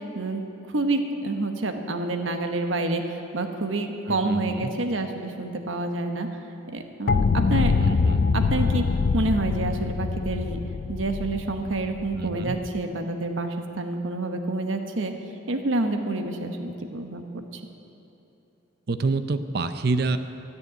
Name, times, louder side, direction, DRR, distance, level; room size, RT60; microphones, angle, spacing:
voice 1, 0.7-3.0 3.3-6.3 6.7-7.7 8.3-8.8 9.1-10.6 10.9-15.1 15.5-17.5, right 2 dB, 80° right, 5 dB, 1.0 m, -28 dB
voice 2, 4.1-4.7 7.8-8.2 12.1-12.6 18.9-20.2, right 3 dB, 55° right, 10 dB, 0.6 m, -27 dB
sound 1, 7.1-12.8, left 4 dB, 45° left, 0.3 m, -24 dB
13.5 x 6.9 x 9.1 m, 2.9 s
head